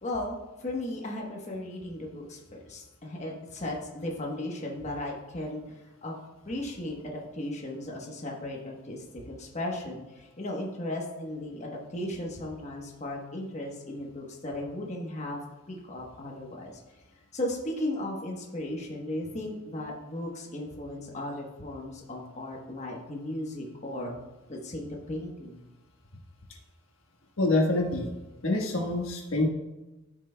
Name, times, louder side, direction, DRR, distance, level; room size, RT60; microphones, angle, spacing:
voice 1, 0.0-5.6 6.0-6.1 6.4-15.4 15.7-16.8 17.3-24.2 24.5-25.6, left 1 dB, 35° left, -1 dB, 1.1 m, -36 dB
voice 2, 27.4-28.1 28.4-29.5, left 2 dB, 70° left, 1 dB, 1.4 m, -26 dB
13.5 x 6.0 x 2.2 m, 1.1 s
head